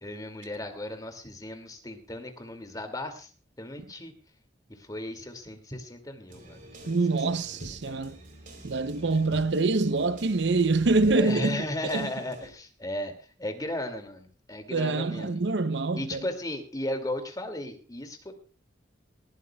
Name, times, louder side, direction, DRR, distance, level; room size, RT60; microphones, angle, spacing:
voice 1, 0.0-3.3 3.6-4.1 4.8-7.0 7.3-7.4 7.9-8.2 9.1-9.2 11.2-13.1 13.4-15.4 15.9-18.3, left 1 dB, 20° left, 2.4 m, -36 dB
sound 1, 6.3-12.5, right 1 dB, 45° right, 3.8 m, -47 dB
voice 2, 6.9-8.2 8.6-12.1 14.7-16.3, right 3 dB, 70° right, 0.7 m, -25 dB
19.5 x 15.0 x 2.3 m
head